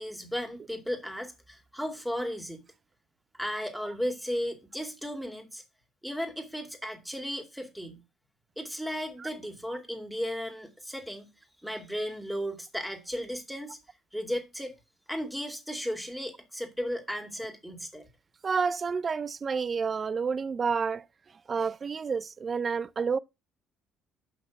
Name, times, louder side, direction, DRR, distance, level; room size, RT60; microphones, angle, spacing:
voice 1, 0.0-2.6 3.4-5.6 6.0-8.0 8.6-11.3 11.6-13.8 14.1-14.7 15.1-18.1, equal, ahead, 2.2 m, -35 dB
voice 2, 18.4-21.0 21.5-23.2, right 5 dB, 40° right, 0.4 m, -29 dB
6.1 x 5.8 x 5.9 m
supercardioid pair, 70°, 0 cm